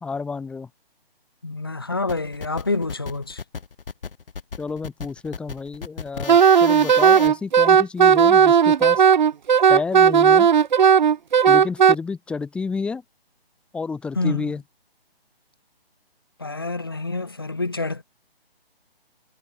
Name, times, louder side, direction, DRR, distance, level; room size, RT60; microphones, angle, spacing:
voice 1, 0.0-0.7 4.6-9.0 9.7-10.5 11.5-13.0 13.7-14.6, left 4 dB, 5° left, 1.1 m, -30 dB
voice 2, 1.4-3.4 14.2-14.5 16.4-18.0, left 3 dB, 25° left, 0.4 m, -27 dB
sound 1, 2.1-7.3, left 5 dB, 60° left, 4.1 m, -35 dB
Wind instrument woodwind instrument, 6.3-12.0, right 7 dB, 50° right, 0.6 m, -15 dB
figure-of-eight pair, 150°, 31 cm